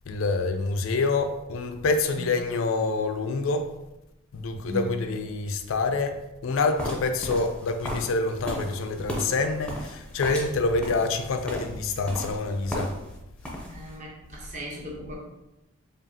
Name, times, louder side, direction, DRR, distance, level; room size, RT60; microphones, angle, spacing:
voice 1, 0.1-3.7 4.3-13.0, left 3 dB, 70° left, 0.4 m, -27 dB
voice 2, 4.7-5.0 13.7-15.1, right 1 dB, 35° right, 0.8 m, -37 dB
sound 1, 6.8-13.2 13.4-13.9, equal, 5° left, 0.5 m, -36 dB
4.9 x 2.4 x 2.7 m
head